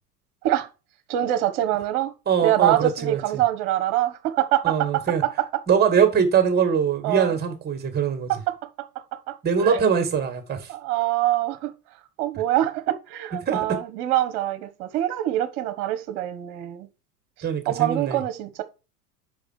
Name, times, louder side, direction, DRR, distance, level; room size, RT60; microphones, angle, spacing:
voice 1, 1.1-2.1 2.4-5.0 7.0-7.4 8.3-9.8 10.7-11.7 12.2-16.9 17.7-18.6, right 13 dB, 45° right, 1.3 m, -25 dB
voice 2, 2.3-3.2 4.6-5.2 5.7-8.3 9.4-10.7 13.5-13.8 17.4-18.2, right 7 dB, 20° right, 1.9 m, -22 dB
5.8 x 4.8 x 6.1 m
figure-of-eight pair, 95°, 48 cm